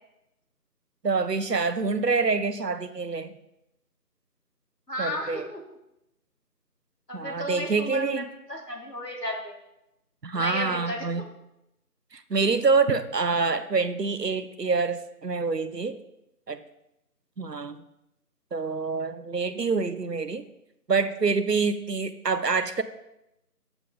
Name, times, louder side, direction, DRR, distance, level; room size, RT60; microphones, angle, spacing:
voice 1, 1.0-3.3 5.0-5.5 7.1-8.2 10.2-11.2 12.1-16.0 16.5-16.6 17.4-17.8 18.5-20.4 20.9-22.8, right 4 dB, 90° right, 13 dB, 1.0 m, -26 dB
voice 2, 4.9-5.6 7.1-9.5 10.3-11.3, left 1 dB, 85° left, 0 dB, 3.2 m, -34 dB
12.5 x 6.3 x 3.7 m, 0.88 s
figure-of-eight pair, 170°, 47 cm